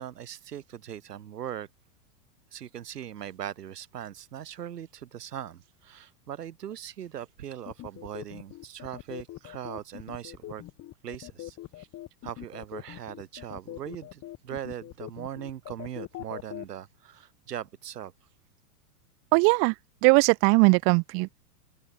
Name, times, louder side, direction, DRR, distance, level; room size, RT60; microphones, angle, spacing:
voice 1, 0.0-1.7 2.5-10.6 11.0-11.9 12.2-18.1, right 10 dB, 90° right, 5.9 m, -40 dB
sound 1, 7.7-16.7, left 15 dB, 35° left, 7.4 m, -41 dB
voice 2, 19.3-19.7 20.0-21.4, right 35 dB, 30° right, 0.5 m, -20 dB
open air
supercardioid pair, 135°, 46 cm